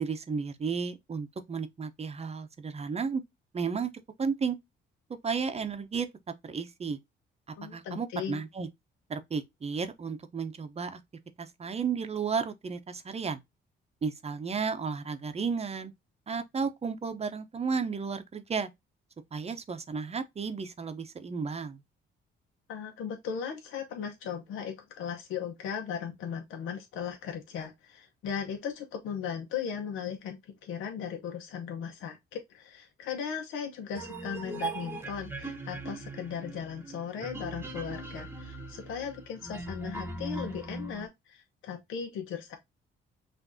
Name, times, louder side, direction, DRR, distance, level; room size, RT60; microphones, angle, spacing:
voice 1, 0.0-3.2 3.5-3.9 4.2-4.6 5.2-6.1 6.4-7.0 7.7-8.7 9.1-11.0 11.4-13.4 14.0-15.9 16.3-18.7 19.3-21.8, right 5 dB, 30° right, 0.7 m, -33 dB
voice 2, 7.6-8.4 22.7-42.6, left 7 dB, 85° left, 0.8 m, -37 dB
Pad arp, 33.9-41.1, right 2 dB, 10° right, 1.0 m, -39 dB
5.9 x 2.6 x 2.6 m
cardioid pair, 90°, 20 cm